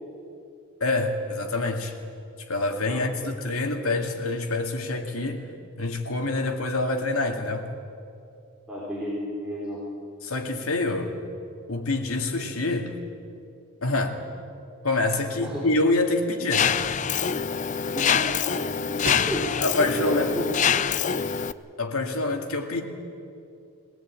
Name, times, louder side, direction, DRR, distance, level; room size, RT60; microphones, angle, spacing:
voice 1, 0.8-1.9 2.5-5.5 5.8-7.7 10.2-11.2 11.7-13.0 13.8-14.2 14.8-16.8 19.2-19.3 19.6-20.3 21.8-22.8, left 2 dB, 75° left, 4 dB, 2.3 m, -26 dB
voice 2, 8.7-9.8 15.4-15.6 17.8-18.6 18.9-20.5, equal, 5° right, -9 dB, 4.1 m, -32 dB
sound 1, 15.5-21.6, right 1 dB, 55° right, 2.9 m, -42 dB
Mechanisms, 16.5-21.5, left 7 dB, 35° left, 0.4 m, -25 dB
22.0 x 18.5 x 8.9 m, 2.5 s
head